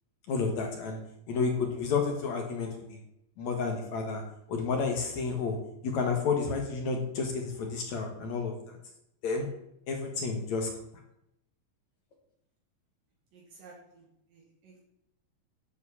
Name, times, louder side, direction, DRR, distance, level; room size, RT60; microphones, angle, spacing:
voice 1, 0.3-1.0 1.3-3.0 3.4-4.2 4.5-5.6 5.8-8.8 9.2-9.5 9.9-10.7, left 4 dB, 60° left, 3 dB, 2.5 m, -31 dB
voice 2, 13.3-14.0 14.3-14.8, right 4 dB, 70° right, -3 dB, 3.6 m, -53 dB
9.8 x 7.5 x 7.0 m, 0.81 s
omnidirectional pair, 4.1 m